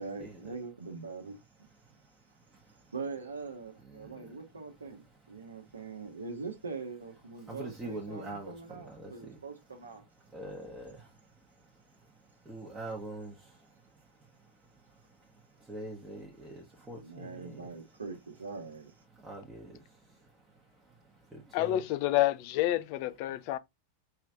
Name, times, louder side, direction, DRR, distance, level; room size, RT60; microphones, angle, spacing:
voice 1, 0.0-1.4 2.9-10.1 17.0-18.9, right 4 dB, 75° right, 0.9 m, -42 dB
voice 2, 2.5-2.9 3.8-4.4 5.4-5.7 7.5-9.4 10.2-11.2 11.6-13.7 14.2-14.3 14.9-17.7 19.1-20.3 20.8-20.9 21.3-21.8, right 2 dB, 10° right, 1.1 m, -45 dB
voice 3, 21.5-23.6, left 14 dB, 45° left, 0.4 m, -28 dB
4.8 x 3.1 x 2.5 m
figure-of-eight pair, 90°, 0 cm